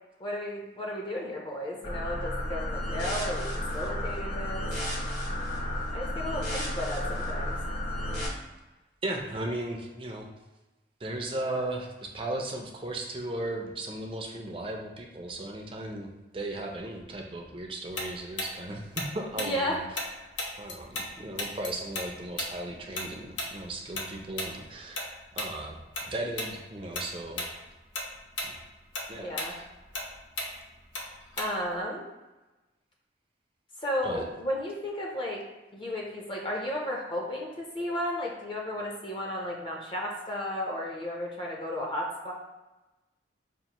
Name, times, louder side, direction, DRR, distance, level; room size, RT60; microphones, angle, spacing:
voice 1, 0.2-3.5 3.7-4.7 5.9-7.6 19.4-19.8 29.1-29.6 31.4-32.0 33.8-35.4 35.7-42.3, left 1 dB, 25° left, -2 dB, 0.6 m, -33 dB
sound 1, 1.8-8.3, left 1 dB, 45° left, 1.1 m, -32 dB
voice 2, 9.0-10.3 11.0-19.9 20.6-25.8 26.1-27.5 29.1-29.6 34.0-34.3, right 1 dB, 30° right, 1 dB, 0.5 m, -36 dB
Tick-tock, 18.0-21.1 21.4-26.1 26.4-26.6 26.9-27.5 27.8-31.8, left 2 dB, 80° left, 0.7 m, -35 dB
5.2 x 2.5 x 2.9 m, 1.1 s
head